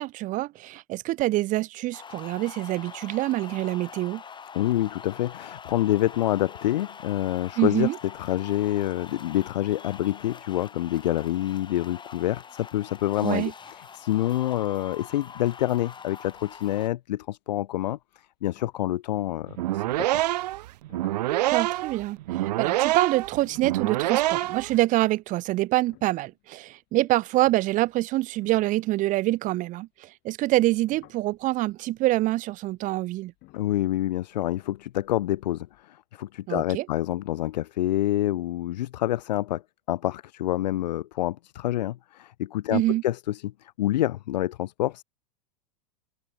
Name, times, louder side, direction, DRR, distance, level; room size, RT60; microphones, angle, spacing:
voice 1, 0.0-4.2 7.6-8.0 13.2-13.5 21.3-33.3 36.5-36.9 42.7-43.0, right 17 dB, 40° right, 0.8 m, -26 dB
sound 1, 1.9-16.9, left 6 dB, 20° left, 6.8 m, -44 dB
voice 2, 4.5-7.9 8.1-18.0 18.4-19.8 20.1-20.2 33.5-39.6 39.9-45.0, left 14 dB, 80° left, 0.5 m, -27 dB
sound 2, 16.3-17.0 17.2-17.6 18.0-18.1 18.4-19.7 20.9-21.4 23.3-26.9 27.6-29.9 30.5-35.8, left 21 dB, 50° left, 6.6 m, -58 dB
sound 3, 19.5-24.8, right 16 dB, 70° right, 0.9 m, -26 dB
hypercardioid pair, 105°, 21 cm